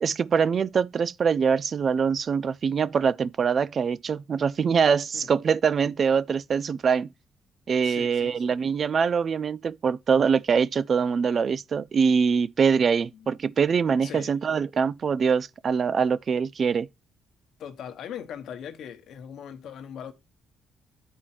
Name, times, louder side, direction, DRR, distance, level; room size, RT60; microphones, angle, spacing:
voice 1, 0.0-7.1 7.7-16.9, right 6 dB, 50° right, 0.3 m, -24 dB
voice 2, 7.8-8.6 13.1-13.3 14.0-14.3 17.6-20.1, left 8 dB, 75° left, 1.1 m, -40 dB
8.7 x 4.5 x 4.4 m
cardioid pair, 90°, 0 cm